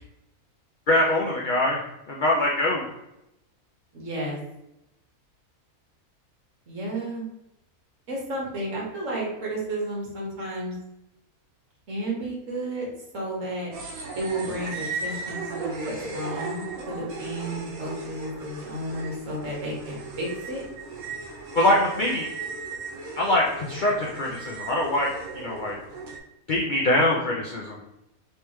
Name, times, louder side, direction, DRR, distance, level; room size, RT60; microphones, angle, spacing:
voice 1, 0.9-1.8 2.1-2.9 21.5-22.3 23.2-25.1 25.3-25.8 26.5-27.8, left 1 dB, 70° left, -2 dB, 0.4 m, -23 dB
voice 2, 3.9-4.4 6.7-7.2 8.1-10.7 11.9-12.9 13.1-13.7 14.1-20.6, right 1 dB, 60° right, -3 dB, 1.5 m, -32 dB
sound 1, 13.7-26.2, right 3 dB, 75° right, 1.2 m, -37 dB
3.4 x 3.2 x 3.0 m, 0.87 s
omnidirectional pair, 1.6 m